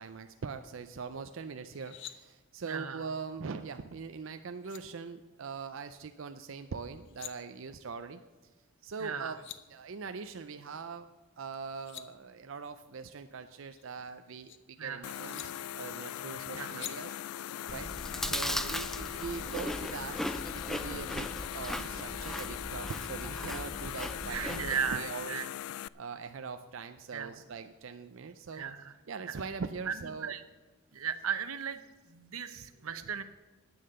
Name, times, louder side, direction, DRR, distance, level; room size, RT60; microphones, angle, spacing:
voice 1, 0.0-8.2 8.8-9.4 9.7-11.1 11.4-17.2 17.7-17.9 18.2-20.2 20.5-21.3 21.5-25.4 25.9-28.6 29.1-30.3, right 5 dB, 65° right, 8 dB, 0.5 m, -42 dB
sound 1, 1.7-2.1 4.2-4.3 4.6-4.8 6.9-7.3 9.0-9.1 9.2-9.6 11.5-12.1 13.5-14.6 15.3-15.5 16.7-16.9, left 12 dB, 60° left, 0.7 m, -45 dB
voice 2, 2.6-3.0 9.0-9.3 14.8-15.2 16.5-16.8 18.4-18.5 24.3-25.5 27.1-27.4 28.5-28.9 29.3-29.4 29.9-30.0 30.2-30.4 30.9-31.8 32.1-33.2, right 7 dB, 90° right, 11 dB, 0.9 m, -36 dB
sound 2, 15.0-25.9, left 11 dB, 80° left, 0.3 m, -40 dB
Chewing mastication, 17.7-25.0, left 1 dB, ahead, 0.3 m, -38 dB
11.0 x 8.7 x 6.6 m, 1.2 s
head